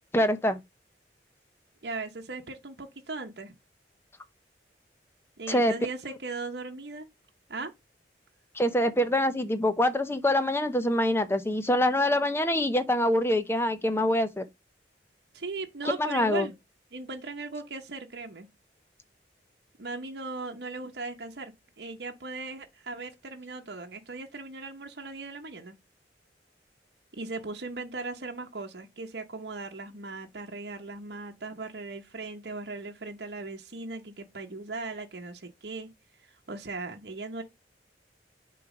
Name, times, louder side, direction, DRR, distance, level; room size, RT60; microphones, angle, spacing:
voice 1, 0.1-0.6 5.5-5.7 8.5-14.4 16.0-16.5, left 1 dB, 15° left, 0.6 m, -25 dB
voice 2, 1.8-3.5 5.4-7.1 7.5-7.7 15.3-16.5 16.9-18.5 19.8-25.7 27.1-35.9 36.5-37.4, right 3 dB, 65° right, 1.0 m, -38 dB
6.8 x 3.1 x 5.0 m
head